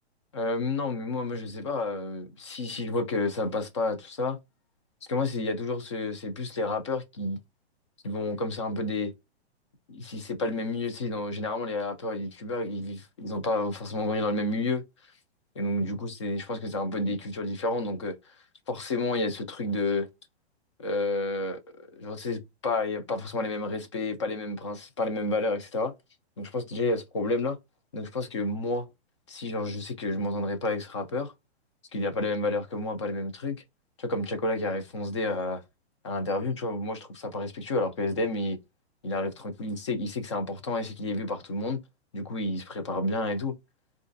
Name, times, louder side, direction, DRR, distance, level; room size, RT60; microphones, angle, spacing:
voice 1, 0.3-4.4 5.1-7.4 8.0-9.1 9.9-14.8 15.6-18.3 18.7-20.1 20.8-21.6 22.0-25.9 26.4-27.6 27.9-28.9 29.3-31.3 31.9-33.6 34.0-35.6 36.0-38.6 39.0-41.8 42.1-43.5, left 2 dB, 30° left, 0.4 m, -30 dB
4.4 x 2.4 x 2.5 m
hypercardioid pair, 165°, 33 cm